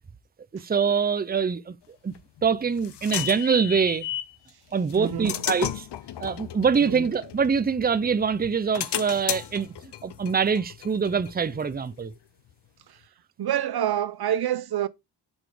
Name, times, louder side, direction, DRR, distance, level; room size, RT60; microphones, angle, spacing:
voice 1, 0.5-1.7 2.0-2.1 2.4-4.1 4.7-5.9 6.2-12.1, right 6 dB, 20° right, 0.6 m, -24 dB
sound 1, 2.2-4.4 4.9-8.0 8.4-11.9, left 11 dB, 75° left, 0.7 m, -34 dB
voice 2, 5.0-5.4 6.8-7.1 12.9-13.0 13.4-14.9, right 10 dB, 65° right, 0.7 m, -27 dB
7.0 x 4.1 x 4.9 m
cardioid pair, 80°, 41 cm